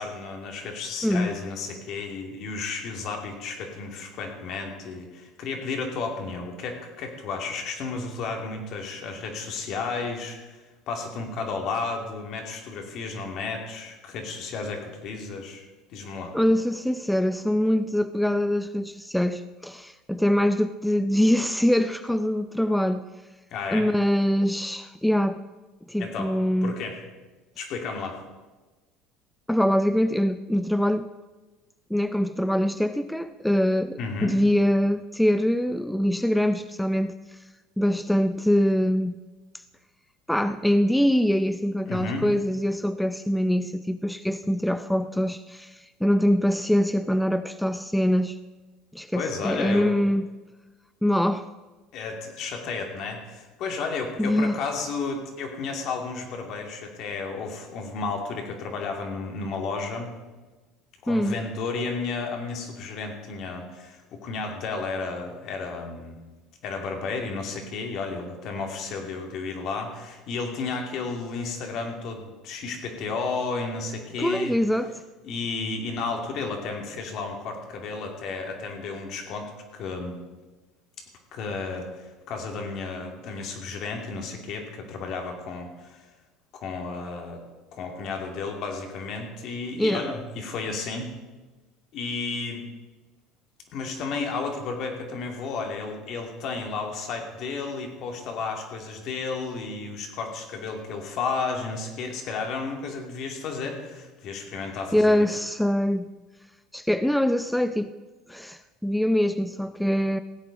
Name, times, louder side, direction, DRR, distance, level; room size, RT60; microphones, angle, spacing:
voice 1, 0.0-15.7 15.9-16.4 23.5-23.9 26.0-26.3 26.6-27.0 27.6-28.2 34.0-34.4 41.9-42.3 49.1-49.9 51.9-60.1 61.0-66.2 66.6-74.6 75.2-80.2 81.3-86.0 86.5-87.4 87.7-91.1 91.9-92.6 93.7-105.3, left 4 dB, 55° left, 3 dB, 2.5 m, -32 dB
voice 2, 1.0-1.4 16.3-23.0 23.7-25.4 25.9-26.7 29.5-31.1 31.9-37.4 37.8-39.2 40.3-48.4 48.9-50.3 51.0-51.5 54.2-54.6 61.1-61.4 74.2-75.0 89.8-90.1 104.9-106.1 106.7-107.9 108.3-110.2, equal, 5° left, 11 dB, 0.4 m, -24 dB
16.0 x 8.3 x 5.3 m, 1.2 s
supercardioid pair, 105°, 0 cm